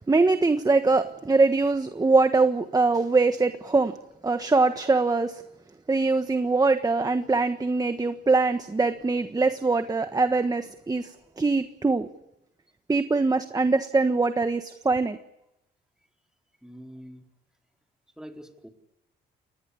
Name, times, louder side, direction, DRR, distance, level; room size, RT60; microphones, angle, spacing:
voice 1, 0.1-3.9 4.2-5.4 5.9-12.1 12.9-15.2, right 3 dB, 20° right, 9 dB, 1.4 m, -23 dB
voice 2, 16.6-17.3 18.2-18.7, equal, 5° right, 3 dB, 4.2 m, -44 dB
28.5 x 20.5 x 8.6 m, 0.87 s
cardioid pair, 90°, 20 cm